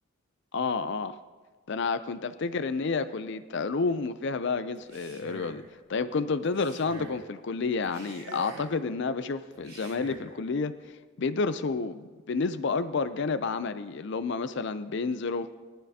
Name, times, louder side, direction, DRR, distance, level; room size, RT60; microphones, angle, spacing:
voice 1, 0.5-1.2 1.7-5.6 5.9-10.7 11.2-15.5, left 4 dB, 55° left, 12 dB, 0.4 m, -30 dB
Male speech man speaking, 4.7-5.7 6.4-7.2 7.8-8.8 9.5-10.3, right 2 dB, 65° right, 3.7 m, -45 dB
21.0 x 11.5 x 2.8 m, 1.4 s
head